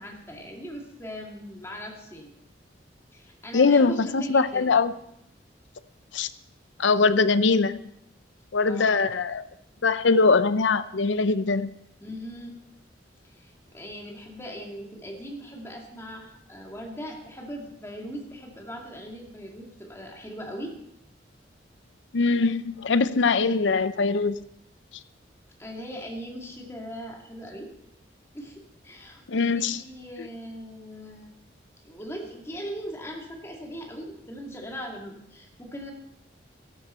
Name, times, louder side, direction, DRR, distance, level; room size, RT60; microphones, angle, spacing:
voice 1, 0.0-2.3 3.1-4.7 8.6-9.0 12.0-12.6 13.2-20.7 25.6-27.7 28.3-28.5 28.8-31.3 31.8-35.9, equal, 15° left, 0 dB, 2.3 m, -39 dB
voice 2, 3.5-4.9 6.1-6.3 6.8-7.8 8.5-9.5 9.8-11.7 22.1-24.4 29.3-29.8 30.2-30.3, left 4 dB, 85° left, 14 dB, 0.6 m, -22 dB
13.0 x 11.5 x 4.4 m, 0.77 s
head